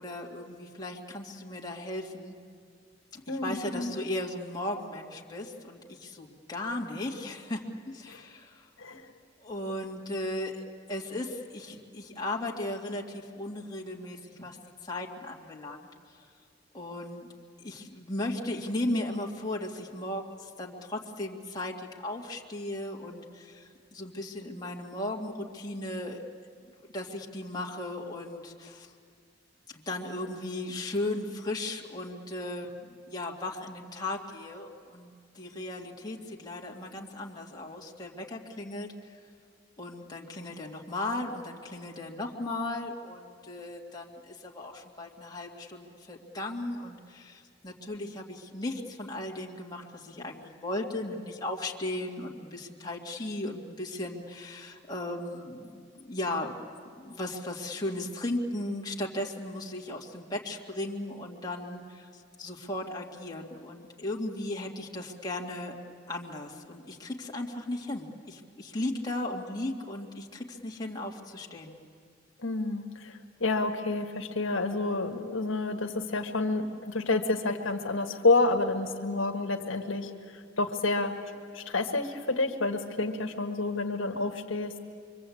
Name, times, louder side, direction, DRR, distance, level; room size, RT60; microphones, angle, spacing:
voice 1, 0.0-2.4 3.1-8.7 9.4-10.6 10.9-14.6 14.8-15.9 16.7-17.3 17.6-26.2 26.9-28.9 29.7-39.2 39.8-56.6 57.0-65.8 66.1-71.8, left 1 dB, 20° left, -1 dB, 2.2 m, -36 dB
voice 2, 3.3-3.9 8.1-8.2 8.8-9.1 72.4-80.1 80.6-81.1 81.5-84.8, left 3 dB, 75° left, 3 dB, 1.6 m, -29 dB
25.0 x 24.0 x 8.6 m, 2.2 s
head